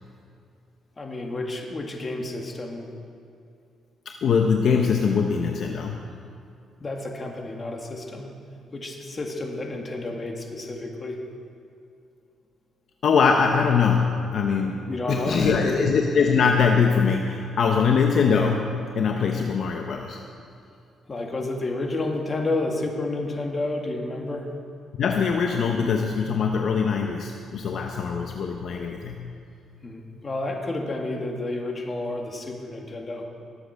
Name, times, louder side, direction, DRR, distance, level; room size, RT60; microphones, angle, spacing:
voice 1, 1.0-2.9 6.8-8.3 8.7-11.2 14.9-15.7 21.1-24.5 29.8-33.2, left 2 dB, 30° left, 1 dB, 2.1 m, -30 dB
voice 2, 4.1-6.0 13.0-20.2 25.0-29.3, left 5 dB, 60° left, 3 dB, 0.9 m, -22 dB
18.5 x 7.7 x 6.5 m, 2.5 s
cardioid pair, 90°, 0 cm